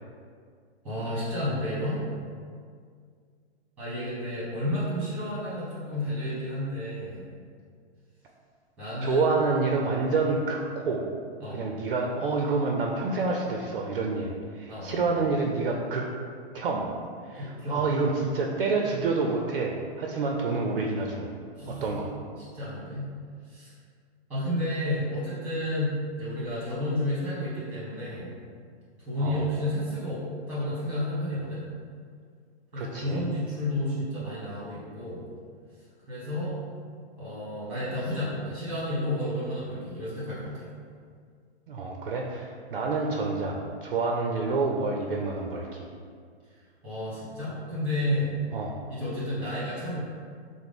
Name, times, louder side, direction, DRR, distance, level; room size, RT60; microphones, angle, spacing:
voice 1, 0.8-2.0 3.8-7.3 8.8-9.3 11.4-11.6 14.7-15.0 17.4-17.8 21.6-22.0 22.5-23.1 23.5-23.7 24.3-28.3 29.1-30.2 30.5-31.7 32.7-35.2 36.1-36.6 37.2-40.7 46.8-48.3 48.9-50.0, left 1 dB, 5° right, -9 dB, 1.1 m, -31 dB
voice 2, 9.0-11.0 11.5-16.1 16.5-16.9 17.3-21.3 21.7-22.1 29.2-29.4 32.7-33.2 41.7-45.9 48.5-48.8, right 3 dB, 55° right, 0 dB, 0.4 m, -28 dB
5.8 x 2.0 x 3.4 m, 2.1 s
hypercardioid pair, 170°, 34 cm